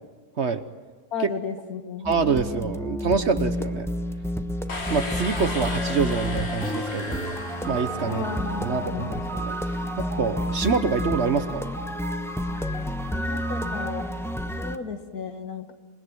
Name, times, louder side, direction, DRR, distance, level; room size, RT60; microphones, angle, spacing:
voice 1, 1.1-2.1 8.1-9.2 13.1-14.1 14.6-15.7, left 5 dB, 70° left, 7 dB, 2.2 m, -34 dB
sound 1, 2.0-14.8, equal, ahead, 0.9 m, -30 dB
voice 2, 2.0-3.9 4.9-7.4 7.7-8.2 8.6-9.5 10.0-11.7, right 5 dB, 50° right, 11 dB, 1.1 m, -26 dB
sound 2, 4.7-8.5, left 3 dB, 40° left, 2.3 m, -35 dB
sound 3, 7.4-13.9, right 3 dB, 70° right, 3.3 m, -38 dB
28.0 x 20.0 x 9.5 m, 1.4 s
omnidirectional pair, 1.7 m